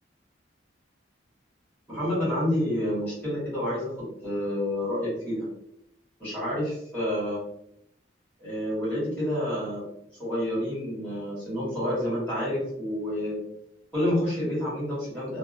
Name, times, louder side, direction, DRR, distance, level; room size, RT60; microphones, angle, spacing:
voice 1, 1.9-5.5 6.2-7.4 8.4-9.9 10.2-13.4 13.9-15.4, left 1 dB, 10° left, -9 dB, 1.5 m, -29 dB
2.7 x 2.1 x 2.5 m, 0.76 s
head